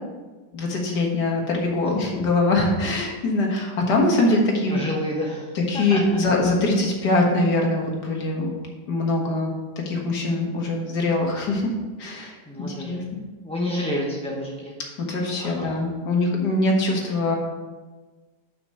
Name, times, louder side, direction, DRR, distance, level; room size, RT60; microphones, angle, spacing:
voice 1, 0.5-4.8 5.6-8.5 8.9-9.5 9.9-11.7 12.0-13.0 15.0-17.4, left 2 dB, 70° left, 0 dB, 2.1 m, -23 dB
voice 2, 4.7-6.0 12.5-13.1 13.4-14.7 15.4-15.8, left 1 dB, 5° left, -4 dB, 0.6 m, -30 dB
6.0 x 5.8 x 6.5 m, 1.3 s
omnidirectional pair, 1.8 m